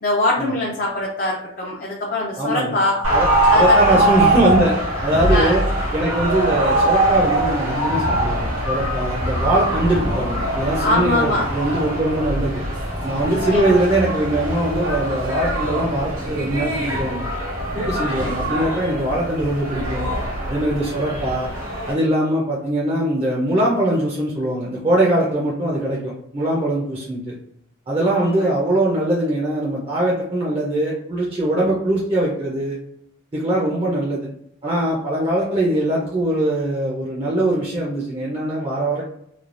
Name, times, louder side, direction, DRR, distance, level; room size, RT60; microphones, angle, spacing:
voice 1, 0.0-3.1 3.5-3.8 5.0-5.6 10.8-11.5 13.5-13.7 28.0-28.5, left 1 dB, 40° left, -3 dB, 0.4 m, -23 dB
voice 2, 2.4-2.8 3.1-3.3 3.5-4.8 5.0-5.6 5.9-12.6 13.0-17.2 17.7-20.1 20.5-21.5 21.9-27.3 27.9-32.8 33.3-34.3 34.6-39.0, right 1 dB, 25° right, -5 dB, 0.5 m, -21 dB
sound 1, 3.0-21.9, right 1 dB, 85° right, 1.4 m, -22 dB
3.2 x 2.2 x 2.5 m, 0.74 s
head